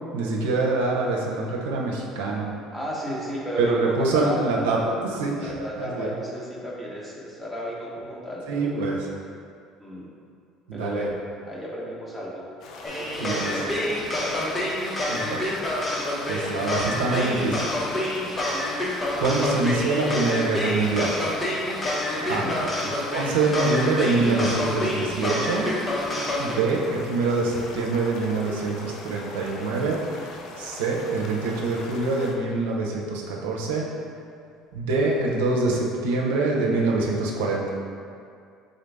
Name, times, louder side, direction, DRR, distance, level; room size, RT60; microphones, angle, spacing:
voice 1, 0.1-2.5 3.6-4.8 5.0-5.5 5.8-6.1 8.5-9.0 10.7-11.0 13.2-13.4 15.1-15.4 16.3-17.7 18.4-18.5 19.2-21.2 22.3-22.5 22.8-25.7 26.4-30.0 30.6-33.8 34.7-37.7, right 3 dB, 90° right, -2 dB, 0.6 m, -25 dB
voice 2, 2.7-5.0 5.4-8.9 9.8-10.1 10.7-11.1 11.4-12.4 12.8-14.5 18.2-18.8 21.8-22.6, equal, 5° left, -5 dB, 1.1 m, -34 dB
sound 1, 12.6-32.3, left 3 dB, 65° left, 0.5 m, -41 dB
sound 2, 12.8-26.5, left 1 dB, 25° left, 0.8 m, -28 dB
3.8 x 3.8 x 3.4 m, 2.3 s
supercardioid pair, 85°, 0 cm